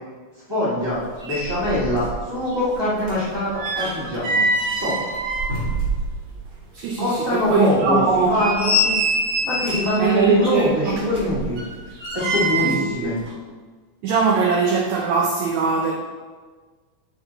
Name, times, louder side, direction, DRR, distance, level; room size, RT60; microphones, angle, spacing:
voice 1, 0.5-4.4 4.8-4.9 7.0-8.9 9.4-11.6 12.1-13.1, left 1 dB, 15° right, -10 dB, 1.0 m, -23 dB
sound 1, 0.9-1.0 1.2-2.2 2.5-6.4 6.8-6.9 7.4-7.5 8.1-10.0 10.9-12.9 13.2-13.3, right 1 dB, 55° right, 2.8 m, -24 dB
voice 2, 6.7-8.3 10.0-10.9 12.6-12.7 13.0-13.1 14.0-15.9, right 5 dB, 85° right, -1 dB, 1.6 m, -21 dB
9.9 x 3.9 x 4.0 m, 1.4 s
omnidirectional pair, 4.2 m